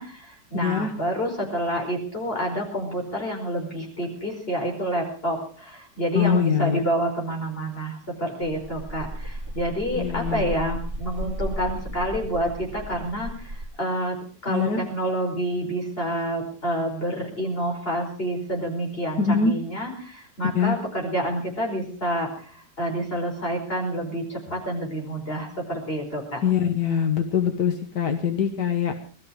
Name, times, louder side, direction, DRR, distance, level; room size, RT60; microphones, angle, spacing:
voice 1, 0.0-14.2 14.4-26.4, right 1 dB, 35° left, -1 dB, 5.5 m, -28 dB
voice 2, 0.6-0.9 6.2-6.8 10.0-10.4 14.5-14.8 19.2-19.5 20.5-20.8 26.4-28.9, left 7 dB, 75° left, 6 dB, 1.8 m, -23 dB
sound 1, 8.4-13.6, right 1 dB, 30° right, 2.8 m, -35 dB
20.5 x 13.0 x 4.8 m, 0.43 s
omnidirectional pair, 1.8 m